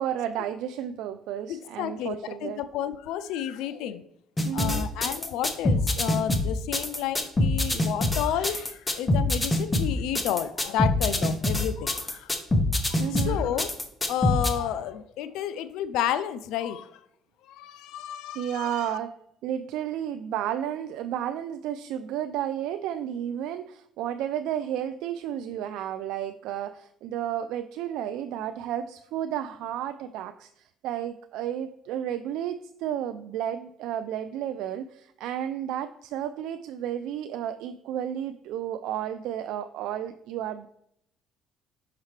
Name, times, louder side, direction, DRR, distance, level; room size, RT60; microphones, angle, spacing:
voice 1, 0.0-2.6 4.4-4.9 13.0-13.4 18.3-19.1 19.4-40.7, right 10 dB, 80° right, 10 dB, 0.3 m, -32 dB
voice 2, 1.5-4.0 4.5-12.3 12.9-13.7 14.1-17.0 17.5-18.9, left 10 dB, 80° left, 13 dB, 0.3 m, -31 dB
sound 1, 4.4-14.5, left 2 dB, 15° left, 0.8 m, -24 dB
5.7 x 5.7 x 3.2 m, 0.74 s
cardioid pair, 115°, 0 cm